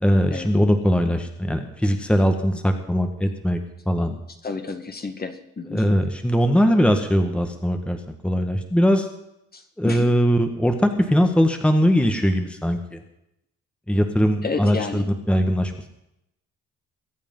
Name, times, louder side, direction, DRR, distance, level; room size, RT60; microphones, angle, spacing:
voice 1, 0.0-3.6 3.9-4.2 5.7-8.0 8.2-9.1 9.8-13.0 13.9-15.9, equal, 5° left, 5 dB, 1.7 m, -20 dB
voice 2, 4.4-5.8 9.5-10.1 14.4-15.1, left 4 dB, 30° left, 6 dB, 1.9 m, -31 dB
22.5 x 8.5 x 5.6 m, 0.81 s
cardioid pair, 90°, 30 cm